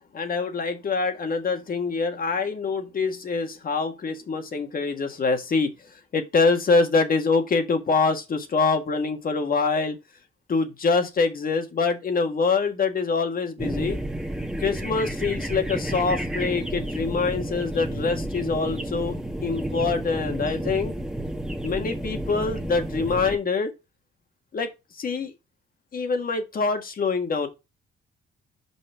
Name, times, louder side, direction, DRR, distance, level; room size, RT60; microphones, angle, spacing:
voice 1, 0.1-10.0 10.5-14.0 14.6-19.1 19.4-20.9 21.6-23.7 24.5-25.3 25.9-27.5, left 4 dB, 45° left, 1.6 m, -25 dB
sound 1, 13.6-23.4, right 1 dB, 5° right, 1.5 m, -31 dB
5.7 x 5.4 x 4.6 m
cardioid pair, 90°, 20 cm